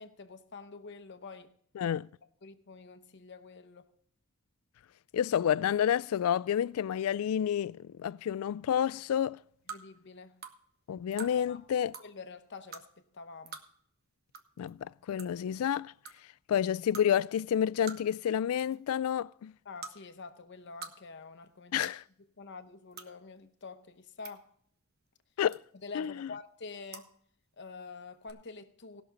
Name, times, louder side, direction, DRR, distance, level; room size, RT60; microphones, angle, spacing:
voice 1, 0.0-1.5 2.4-3.9 9.7-10.4 11.2-11.6 12.0-13.6 19.6-21.9 22.4-24.5 25.8-27.1 27.6-29.0, left 4 dB, 55° left, 0.9 m, -47 dB
voice 2, 1.8-2.1 5.1-9.4 10.9-11.9 14.6-15.9 16.5-19.5 21.7-22.0 25.4-25.6 25.9-26.3, left 9 dB, 75° left, 0.3 m, -29 dB
sound 1, 9.7-9.8 10.4-10.5 11.1-11.3 11.9-12.1 12.7-12.8 13.5-13.6 14.3-14.4 14.7-14.8 15.2-15.4 16.0-16.1 16.9-17.1 17.9-18.2 18.5-18.8 19.8-19.9 20.6-20.9 21.2-21.3 21.8-22.0 22.9-23.1 23.9-24.3 25.5-25.8 26.9-27.1 28.2-28.3, right 5 dB, 45° right, 1.0 m, -44 dB
19.0 x 6.4 x 4.0 m
head